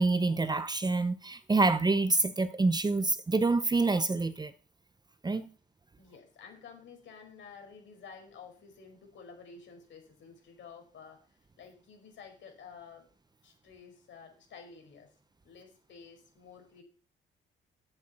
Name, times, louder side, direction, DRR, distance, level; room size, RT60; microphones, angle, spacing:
voice 1, 0.0-4.5 5.2-5.5, right 3 dB, 20° right, 0.8 m, -27 dB
voice 2, 6.0-11.2 11.6-13.1 13.4-15.1 15.4-16.8, left 5 dB, 70° left, 5.2 m, -51 dB
9.0 x 8.7 x 5.9 m
cardioid pair, 90°, 20 cm